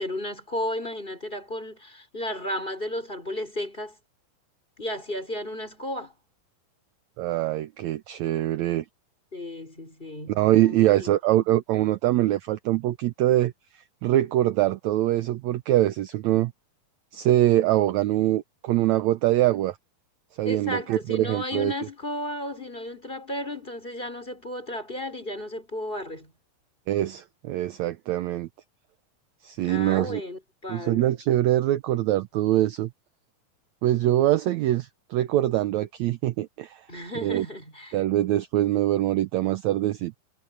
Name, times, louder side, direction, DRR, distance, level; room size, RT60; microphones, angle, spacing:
voice 1, 0.0-4.0 4.8-6.1 9.3-11.1 20.4-26.3 29.6-31.1 36.9-38.0, left 1 dB, 15° left, 4.5 m, -34 dB
voice 2, 7.2-8.8 10.3-13.5 14.0-16.5 17.1-19.8 20.4-21.7 26.9-28.5 29.4-30.2 30.7-32.9 33.8-36.8 37.2-37.5 37.9-40.2, right 14 dB, 80° right, 1.6 m, -23 dB
omnidirectional pair, 4.0 m